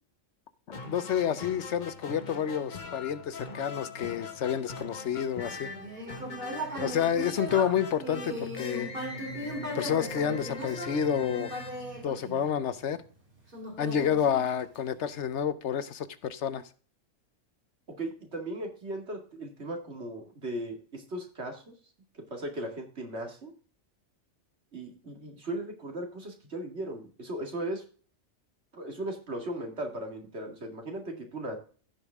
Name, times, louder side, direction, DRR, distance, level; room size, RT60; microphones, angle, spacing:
sound 1, 0.7-12.6, left 3 dB, 40° left, 1.3 m, -42 dB
voice 1, 0.9-5.7 6.8-8.9 9.7-11.5 12.0-13.0 13.8-16.6, left 8 dB, 75° left, 14 dB, 1.1 m, -29 dB
Human voice, 5.6-12.9 13.5-15.0, right 1 dB, 45° right, 2.9 m, -38 dB
voice 2, 17.9-21.7 22.1-23.5 24.7-27.8 28.7-31.6, right 1 dB, 65° right, 3 dB, 2.5 m, -37 dB
15.5 x 5.4 x 3.5 m, 0.40 s
omnidirectional pair, 1.2 m